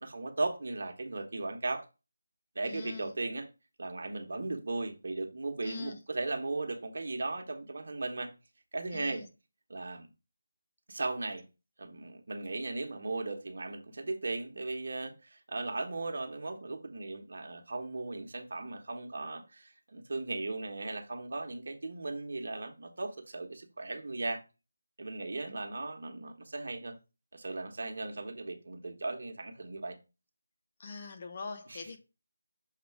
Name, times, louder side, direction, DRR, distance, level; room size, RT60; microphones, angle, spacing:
voice 1, 0.0-1.9 2.5-3.5 3.8-8.3 8.7-9.2 9.7-10.1 10.9-11.5 11.8-24.4 25.0-26.9 27.3-30.0 31.7-32.0, right 2 dB, 60° right, 1.2 m, -37 dB
voice 2, 2.7-3.1 5.6-6.0 8.9-9.3 30.8-32.0, left 4 dB, 35° left, 1.0 m, -42 dB
6.8 x 3.6 x 4.8 m
figure-of-eight pair, 165°, 0 cm